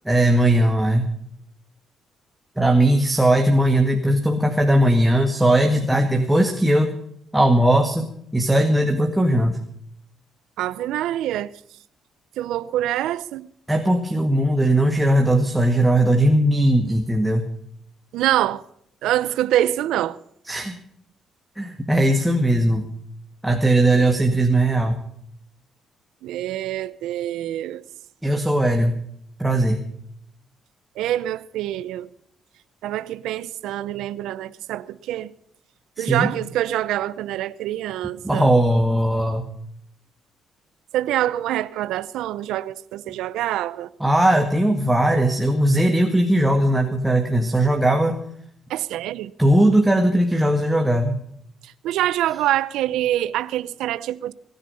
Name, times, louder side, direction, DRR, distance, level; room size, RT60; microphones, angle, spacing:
voice 1, 0.1-1.1 2.6-6.9 7.3-8.1 8.3-9.6 13.7-17.4 20.5-20.8 21.6-22.9 23.4-25.0 28.2-29.0 29.4-29.9 36.0-36.3 38.2-39.4 44.0-48.2 49.4-51.2, right 1 dB, 5° right, 1.9 m, -19 dB
voice 2, 10.6-11.5 12.4-13.5 18.1-18.6 19.0-20.2 24.0-24.4 26.2-27.8 31.0-32.1 32.8-35.3 36.0-38.5 40.9-43.9 48.7-49.3 51.6-54.3, right 13 dB, 90° right, 0.7 m, -25 dB
20.5 x 10.0 x 5.5 m
cardioid pair, 90°, 0 cm